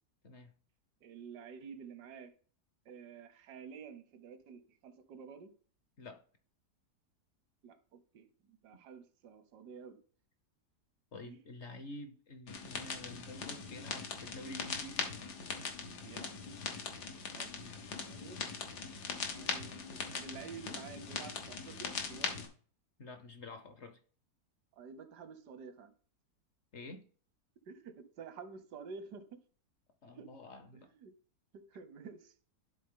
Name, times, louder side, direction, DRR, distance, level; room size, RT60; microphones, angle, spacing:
voice 1, 1.0-2.3 2.9-5.5 7.6-10.0 11.2-11.4 16.0-16.3 17.3-17.6 18.1-18.4 19.3-22.4 24.8-25.9 27.7-29.2 30.2-30.3 31.0-31.1 31.5-32.3, right 6 dB, 85° right, 1.4 m, -50 dB
voice 2, 11.1-15.1 17.6-17.8 23.0-24.0 26.7-27.1 30.0-30.9, left 2 dB, 55° left, 0.9 m, -49 dB
sound 1, 12.5-22.5, left 5 dB, 85° left, 1.7 m, -41 dB
11.0 x 4.0 x 3.7 m
omnidirectional pair, 1.7 m